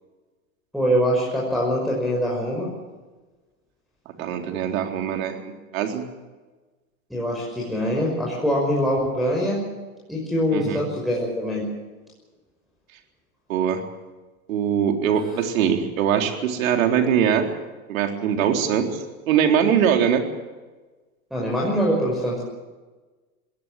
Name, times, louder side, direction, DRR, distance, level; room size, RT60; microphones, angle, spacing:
voice 1, 0.7-2.7 4.2-4.3 7.1-9.6 10.1-11.7 21.3-22.4, equal, ahead, -5 dB, 5.9 m, -23 dB
voice 2, 4.2-6.0 10.5-10.8 13.5-13.8 14.5-17.5 17.9-20.2, right 8 dB, 65° right, 5 dB, 3.9 m, -22 dB
21.5 x 17.5 x 7.7 m, 1.2 s
hypercardioid pair, 110°, 43 cm